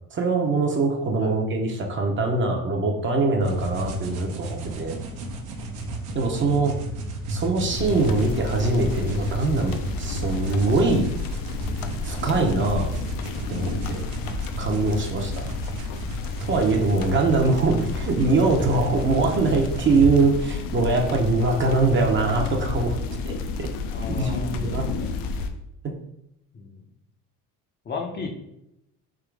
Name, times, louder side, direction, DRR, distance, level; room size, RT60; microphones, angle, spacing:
voice 1, 0.1-5.0 6.1-6.7 7.3-11.1 12.0-12.9 13.5-14.0 14.6-15.4 16.4-23.0 23.3-23.7 24.2-24.9, right 3 dB, 30° right, 2 dB, 0.8 m, -23 dB
sound 1, 3.4-20.1, right 1 dB, 65° right, 1.0 m, -34 dB
sound 2, 7.7-25.5, left 4 dB, 65° left, 0.6 m, -31 dB
voice 2, 23.9-24.6 25.0-25.1 26.5-26.8 27.8-28.3, left 4 dB, 30° left, 1 dB, 0.7 m, -34 dB
3.7 x 2.9 x 4.6 m, 0.83 s
cardioid pair, 120°, 37 cm